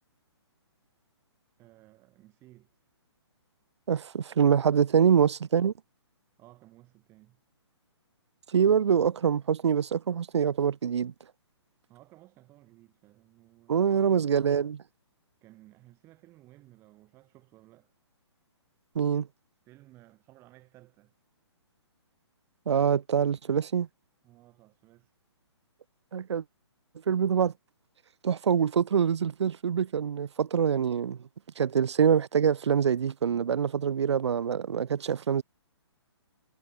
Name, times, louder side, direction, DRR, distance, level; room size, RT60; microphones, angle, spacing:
voice 1, 1.6-2.8 6.4-7.4 11.9-14.3 15.4-17.9 19.7-21.1 24.2-25.1, right 17 dB, 15° right, 4.0 m, -56 dB
voice 2, 3.9-5.7 8.5-11.1 13.7-14.8 18.9-19.3 22.7-23.9 26.1-26.4 27.1-27.5 28.2-31.2 31.6-35.4, right 7 dB, 70° right, 0.9 m, -25 dB
hypercardioid pair, 165°, 15 cm